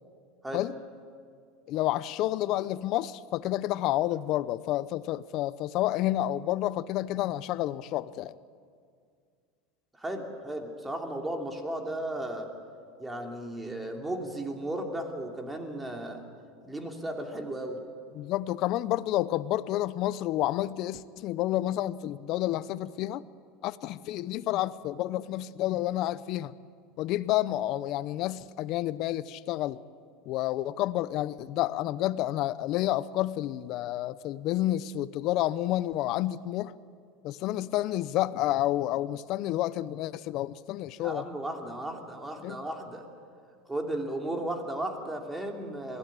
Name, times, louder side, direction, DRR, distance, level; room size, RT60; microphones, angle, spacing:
voice 1, 1.7-8.3 18.1-23.2 23.6-26.5 27.0-29.8 30.3-36.7 37.2-41.3 42.4-42.7, left 14 dB, 55° left, 17 dB, 0.6 m, -29 dB
voice 2, 10.0-12.5 13.0-16.2 16.6-17.8 41.0-43.1 43.7-46.0, right 1 dB, 10° right, 2 dB, 3.0 m, -35 dB
22.0 x 15.5 x 8.9 m, 2.2 s
supercardioid pair, 115°, 0 cm